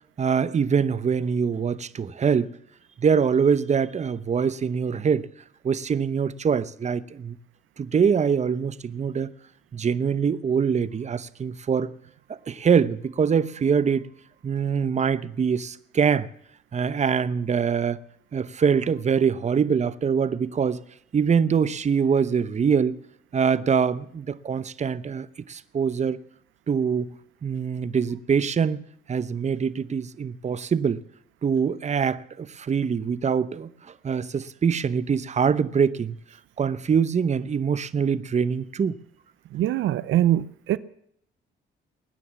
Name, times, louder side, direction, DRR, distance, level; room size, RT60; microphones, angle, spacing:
voice 1, 0.2-2.6 3.0-5.3 5.6-7.4 7.8-9.3 9.7-11.9 12.3-14.1 14.4-16.3 16.7-18.0 18.3-20.8 21.1-23.0 23.3-26.2 26.7-27.1 27.4-28.8 29.1-31.0 31.4-36.2 36.6-39.0, right 6 dB, 35° right, 0.8 m, -24 dB
voice 2, 39.5-40.8, right 13 dB, 80° right, 0.7 m, -23 dB
20.0 x 9.8 x 7.1 m
cardioid pair, 90°, 20 cm